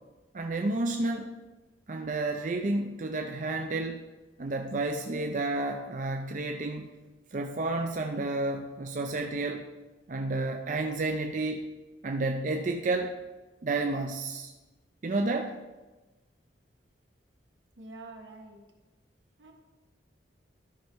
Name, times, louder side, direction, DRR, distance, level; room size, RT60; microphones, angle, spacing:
voice 1, 0.3-1.3 1.9-4.0 4.4-6.9 7.3-9.7 10.1-11.7 12.0-13.2 13.6-14.5 15.0-15.6, right 2 dB, 40° right, 3 dB, 0.5 m, -31 dB
voice 2, 17.8-18.6 19.4-19.5, right 2 dB, 80° right, 2 dB, 1.5 m, -46 dB
12.5 x 5.4 x 4.6 m, 1.2 s
head